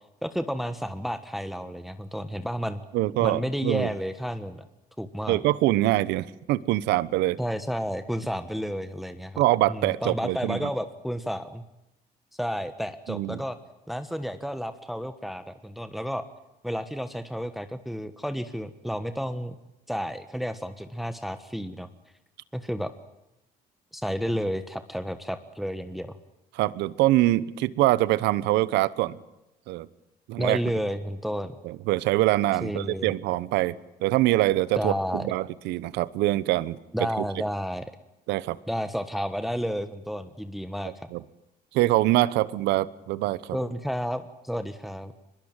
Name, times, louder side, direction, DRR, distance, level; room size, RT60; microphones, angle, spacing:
voice 1, 0.2-2.8 3.2-4.7 5.0-5.4 7.4-11.6 12.3-13.6 13.9-16.2 16.6-19.6 19.9-21.9 22.5-22.9 23.9-26.1 30.4-31.5 32.6-33.1 34.8-35.3 36.9-37.9 38.7-41.1 43.5-45.1, equal, ahead, 10 dB, 1.3 m, -31 dB
voice 2, 2.9-3.9 5.3-7.4 9.4-10.6 13.1-13.4 26.5-29.2 29.7-29.9 30.3-30.6 31.6-33.8 34.0-36.8 38.3-38.6 41.1-41.2 41.7-43.6, right 16 dB, 90° right, 18 dB, 1.1 m, -24 dB
23.5 x 21.5 x 9.1 m, 0.91 s
cardioid pair, 110°, 17 cm